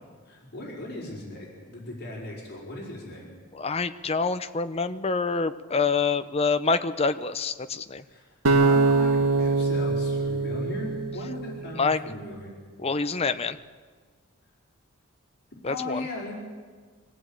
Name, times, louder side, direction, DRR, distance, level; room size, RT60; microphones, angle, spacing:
voice 1, 0.2-3.3 8.1-8.3 8.6-12.5 15.7-16.3, left 1 dB, 50° left, -3 dB, 4.8 m, -37 dB
voice 2, 3.5-8.0 11.8-12.0 12.8-13.6 15.6-16.0, left 4 dB, 30° left, 10 dB, 0.7 m, -26 dB
sound 1, 8.4-11.6, right 3 dB, 90° right, 1.6 m, -23 dB
23.0 x 16.0 x 8.9 m, 1.5 s
head